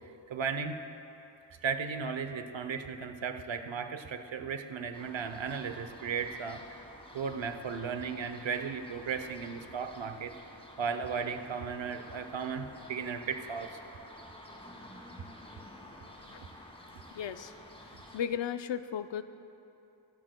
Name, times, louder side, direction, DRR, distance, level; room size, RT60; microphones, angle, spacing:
voice 1, 0.3-0.8 1.5-6.8 7.1-10.3 10.8-13.8, right 6 dB, 90° right, 8 dB, 0.8 m, -35 dB
sound 1, 4.9-18.2, left 1 dB, 15° left, 1.5 m, -51 dB
voice 2, 17.1-17.5 18.1-19.2, left 8 dB, 75° left, 11 dB, 0.6 m, -35 dB
23.0 x 12.5 x 2.2 m, 2.8 s
wide cardioid pair, 90°, 44 cm